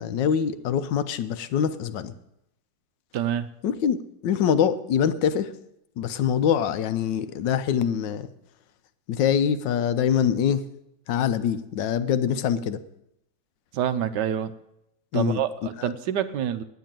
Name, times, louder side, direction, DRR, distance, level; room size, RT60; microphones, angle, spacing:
voice 1, 0.0-2.1 3.6-4.0 4.2-5.5 6.0-8.3 9.1-10.6 11.1-12.8 15.1-15.4 15.8-15.9, left 8 dB, 75° left, 12 dB, 1.3 m, -24 dB
voice 2, 3.1-3.5 6.2-6.4 13.7-14.5 15.1-16.6, right 10 dB, 70° right, 11 dB, 1.2 m, -27 dB
9.4 x 8.3 x 8.9 m, 0.82 s
omnidirectional pair, 2.0 m